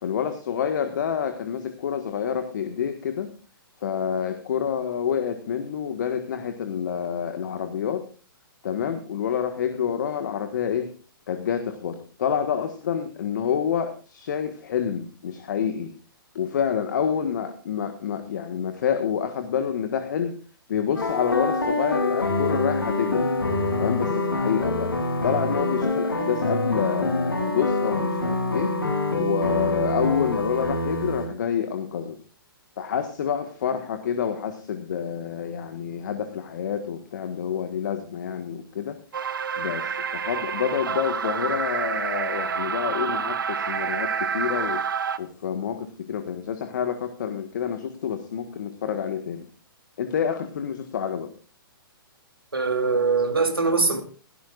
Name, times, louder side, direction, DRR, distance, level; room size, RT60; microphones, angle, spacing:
voice 1, 0.0-3.3 3.8-8.1 8.6-10.9 11.3-15.9 16.3-20.3 20.7-23.3 23.8-24.9 25.2-28.7 29.2-32.2 32.8-39.0 39.6-44.8 45.2-49.5 50.0-51.3, left 8 dB, 55° left, 1.6 m, -28 dB
sound 1, 20.9-31.3, left 2 dB, 75° left, 7.7 m, -25 dB
sound 2, 39.1-45.2, right 6 dB, 65° right, 1.0 m, -28 dB
voice 2, 52.5-54.0, right 4 dB, 80° right, 2.6 m, -22 dB
17.0 x 16.5 x 2.5 m
figure-of-eight pair, 120°, 12 cm